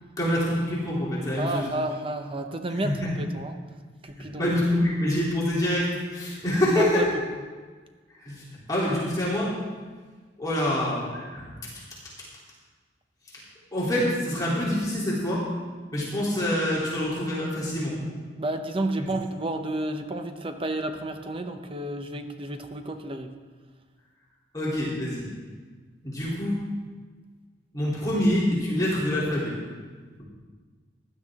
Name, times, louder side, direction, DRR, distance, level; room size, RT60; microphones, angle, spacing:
voice 1, 0.2-1.7 2.7-3.1 4.4-7.1 8.2-8.4 8.7-9.5 10.4-11.4 13.7-15.4 15.9-17.9 24.5-25.2 26.0-26.6 27.7-29.5, left 1 dB, 20° left, -7 dB, 3.3 m, -26 dB
voice 2, 1.4-3.6 4.0-4.5 6.8-7.1 18.4-23.3, right 1 dB, 30° right, 6 dB, 0.8 m, -31 dB
16.0 x 11.5 x 3.7 m, 1.4 s
head